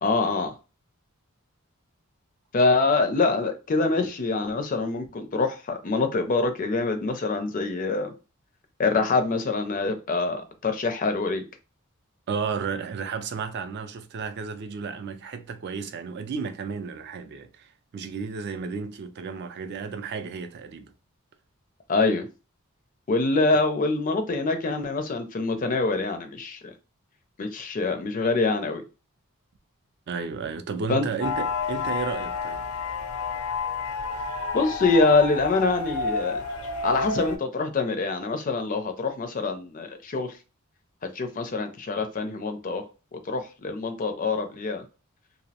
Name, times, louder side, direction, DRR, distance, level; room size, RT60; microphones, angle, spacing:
voice 1, 0.0-0.5 2.5-8.1 8.8-11.4 21.9-22.3 23.1-26.7 27.4-28.8 30.9-31.1 34.5-36.4 36.8-40.3 41.0-42.8 43.1-44.8, left 3 dB, 40° left, 0.4 m, -25 dB
voice 2, 12.3-20.9 30.1-32.6, right 5 dB, 50° right, 0.3 m, -33 dB
sound 1, 31.2-37.4, left 4 dB, 85° left, 0.6 m, -30 dB
2.5 x 2.0 x 2.7 m
head